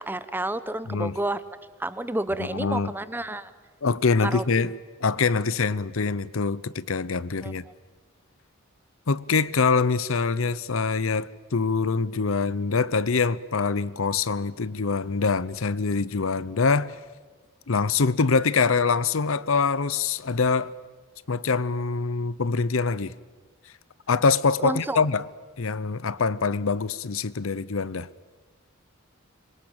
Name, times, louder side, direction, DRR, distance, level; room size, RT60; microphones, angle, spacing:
voice 1, 0.0-1.4 1.8-3.5 4.2-4.4 7.4-7.5 24.6-25.0, right 1 dB, 10° right, 0.9 m, -30 dB
voice 2, 2.4-2.9 3.8-4.7 5.0-7.6 9.1-17.0 17.7-20.8 21.3-23.1 24.1-25.2 25.6-28.1, left 4 dB, 70° left, 0.7 m, -24 dB
25.5 x 23.0 x 8.8 m
head